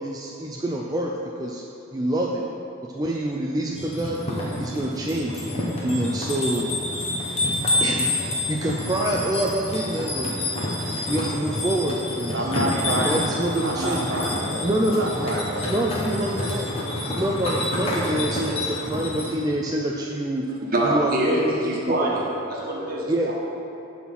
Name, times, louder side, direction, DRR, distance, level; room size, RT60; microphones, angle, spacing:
voice 1, 0.0-1.6 1.9-2.4 2.9-4.2 4.6-5.5 5.8-6.7 7.8-8.1 8.5-10.3 11.1-12.4 13.0-14.1 14.6-15.3 15.7-16.7 17.2-20.4 20.8-21.6 21.9-22.1 23.1-23.3, right 1 dB, 20° right, -2 dB, 0.4 m, -26 dB
sound 1, 3.7-19.3, left 1 dB, 30° left, 1.4 m, -28 dB
voice 2, 12.3-13.3 13.6-16.2 17.8-18.0, right 1 dB, 60° right, -2 dB, 1.5 m, -29 dB
voice 3, 20.7-22.2 22.5-23.3, right 1 dB, 45° right, -3 dB, 1.5 m, -24 dB
11.0 x 4.3 x 5.9 m, 2.9 s
head